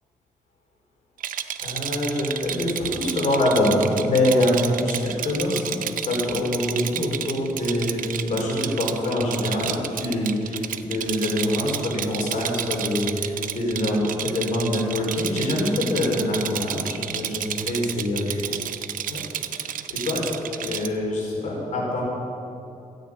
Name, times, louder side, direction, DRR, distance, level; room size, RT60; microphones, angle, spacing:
Rattle, 1.2-20.9, right 10 dB, 80° right, 0.6 m, -31 dB
voice 1, 1.6-5.7 6.0-18.6 19.1-19.2 19.5-22.0, left 1 dB, 65° left, -3 dB, 4.6 m, -25 dB
14.0 x 9.3 x 8.7 m, 2.7 s
wide cardioid pair, 160°, 14 cm